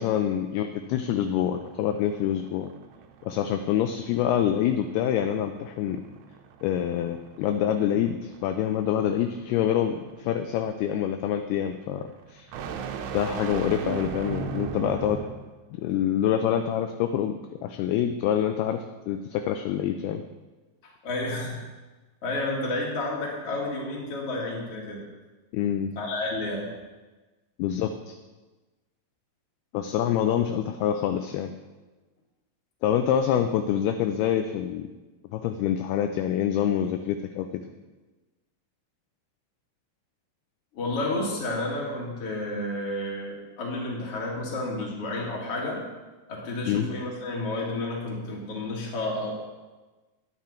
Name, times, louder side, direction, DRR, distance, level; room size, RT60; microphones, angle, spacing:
voice 1, 0.0-2.7 3.2-6.0 6.6-12.5 13.1-15.2 15.8-17.3 17.6-20.2 25.5-25.9 27.6-28.2 29.7-31.5 32.8-34.9 35.3-37.6 46.7-46.9, left 10 dB, 80° left, 7 dB, 2.4 m, -26 dB
sound 1, 1.0-15.5, right 7 dB, 80° right, 2.7 m, -39 dB
voice 2, 20.8-21.7 22.2-25.0 26.0-26.7 40.7-45.8 46.3-49.3, left 2 dB, 40° left, -3 dB, 2.5 m, -31 dB
11.0 x 9.8 x 4.4 m, 1.2 s
omnidirectional pair, 4.9 m